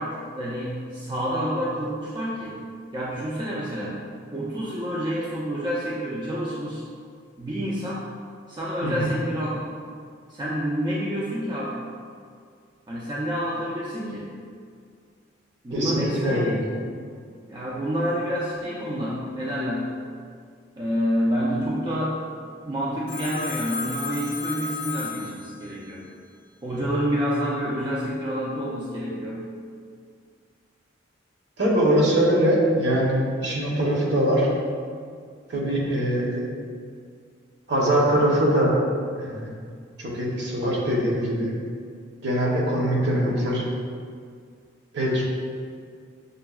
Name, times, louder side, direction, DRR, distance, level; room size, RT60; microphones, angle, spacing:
voice 1, 0.0-2.6 2.9-4.0 4.3-6.8 7.4-8.0 8.5-9.5 10.3-11.8 12.9-14.4 15.6-17.0 17.5-19.9 20.8-22.2 22.6-26.0 26.6-29.5, equal, 25° right, -6 dB, 0.3 m, -28 dB
voice 2, 15.7-16.5 31.6-34.5 35.5-36.5 37.7-38.7 39.2-39.5 40.0-41.5 42.2-43.6 44.9-45.2, right 1 dB, 60° right, -4 dB, 0.8 m, -22 dB
Telephone, 23.1-25.9, left 4 dB, 55° left, 0.6 m, -34 dB
6.5 x 2.2 x 2.3 m, 2.1 s
head